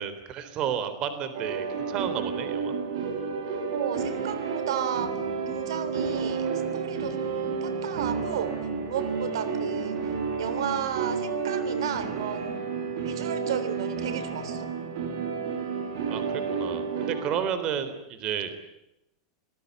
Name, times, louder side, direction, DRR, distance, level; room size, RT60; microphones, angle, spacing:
voice 1, 0.0-2.7 16.1-16.2 16.5-18.5, right 8 dB, 35° right, 11 dB, 3.7 m, -31 dB
sound 1, 1.3-17.4, right 5 dB, 65° right, 8.0 m, -31 dB
voice 2, 3.7-6.5 6.7-7.2 7.6-8.6 8.8-10.1 10.4-12.6 13.0-14.7, right 9 dB, 85° right, 13 dB, 3.3 m, -33 dB
26.0 x 20.0 x 9.7 m, 0.86 s
supercardioid pair, 160°, 2 cm